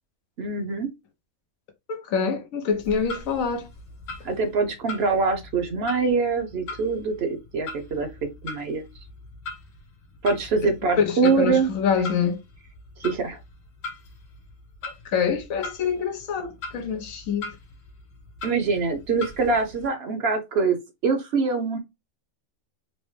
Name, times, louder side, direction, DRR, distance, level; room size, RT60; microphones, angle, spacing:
voice 1, 0.4-0.9 4.2-8.8 10.2-11.7 13.0-13.4 18.4-21.8, right 4 dB, 55° right, 0.9 m, -24 dB
voice 2, 1.9-3.7 10.6-12.4 15.1-17.5, left 6 dB, 90° left, 1.2 m, -26 dB
Clock, 2.7-19.9, left 3 dB, 70° left, 1.6 m, -41 dB
4.1 x 2.0 x 3.2 m
omnidirectional pair, 1.4 m